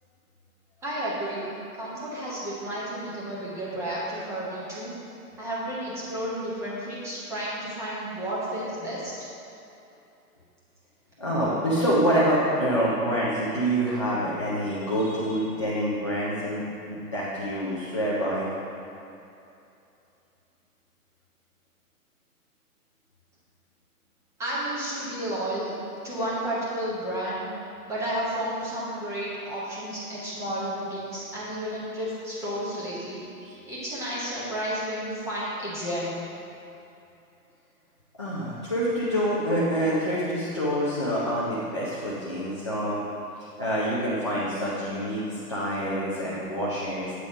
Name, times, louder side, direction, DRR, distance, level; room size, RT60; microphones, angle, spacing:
voice 1, 0.8-1.5 1.7-4.9 5.4-9.1 24.4-25.7 26.0-27.4 27.9-33.2 33.5-36.2, right 1 dB, 5° right, -9 dB, 0.9 m, -32 dB
voice 2, 11.2-18.5 33.6-33.7 38.2-43.0 43.6-45.2 45.5-47.3, equal, 20° left, -9 dB, 0.4 m, -26 dB
8.3 x 3.5 x 5.1 m, 2.8 s
hypercardioid pair, 145°, 46 cm